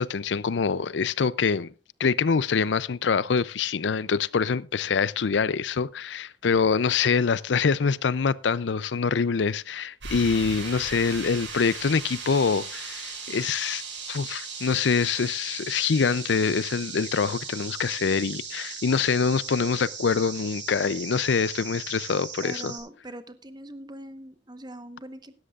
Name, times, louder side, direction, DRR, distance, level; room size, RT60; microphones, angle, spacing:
voice 1, 0.0-1.7 2.0-13.8 14.1-22.7, left 5 dB, 75° left, 0.5 m, -25 dB
sound 1, 10.0-22.8, right 5 dB, 90° right, 6.6 m, -38 dB
voice 2, 22.4-25.3, right 1 dB, 25° right, 1.0 m, -42 dB
16.5 x 13.0 x 2.4 m
head